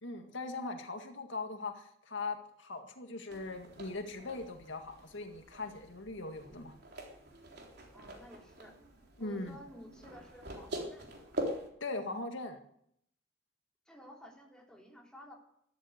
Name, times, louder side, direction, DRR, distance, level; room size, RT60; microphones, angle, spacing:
voice 1, 0.0-6.8 9.2-9.6 11.8-12.6, left 3 dB, 75° left, 5 dB, 2.0 m, -40 dB
sound 1, 3.3-11.7, right 1 dB, 60° right, 3.8 m, -44 dB
voice 2, 7.9-8.8 9.2-11.3 13.9-15.3, equal, 5° left, -1 dB, 3.3 m, -53 dB
14.0 x 12.5 x 8.0 m, 0.71 s
head